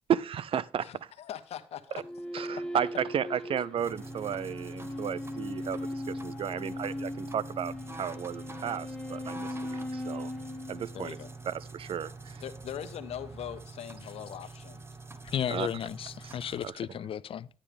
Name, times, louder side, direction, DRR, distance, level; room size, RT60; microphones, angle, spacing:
voice 1, 0.1-0.9 2.3-10.3 10.7-11.2 11.5-12.4 15.5-15.7 16.2-16.7, right 9 dB, 60° right, 0.5 m, -33 dB
voice 2, 0.8-2.0 10.9-11.3 12.4-14.8, left 10 dB, 80° left, 1.1 m, -41 dB
sound 1, 2.0-11.6, left 1 dB, 10° left, 1.3 m, -39 dB
sound 2, 3.8-16.7, right 3 dB, 25° right, 1.2 m, -45 dB
voice 3, 15.2-17.5, left 9 dB, 60° left, 0.4 m, -34 dB
11.5 x 9.0 x 3.5 m
cardioid pair, 75°, 10 cm